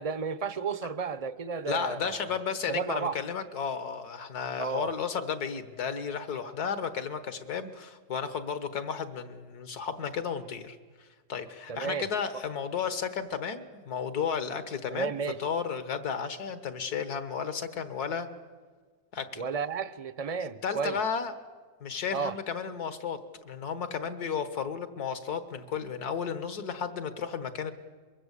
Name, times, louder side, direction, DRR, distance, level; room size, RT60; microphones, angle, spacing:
voice 1, 0.0-2.4 2.7-3.2 4.6-4.9 11.7-12.1 12.3-12.4 14.9-15.4 19.4-21.0 22.1-22.3, right 5 dB, 35° right, 0.5 m, -33 dB
voice 2, 1.7-10.8 11.3-15.1 15.4-18.3 19.1-19.5 20.6-21.3 21.8-23.2 23.4-27.7, left 6 dB, 70° left, 2.0 m, -33 dB
24.5 x 22.5 x 8.3 m
omnidirectional pair, 1.7 m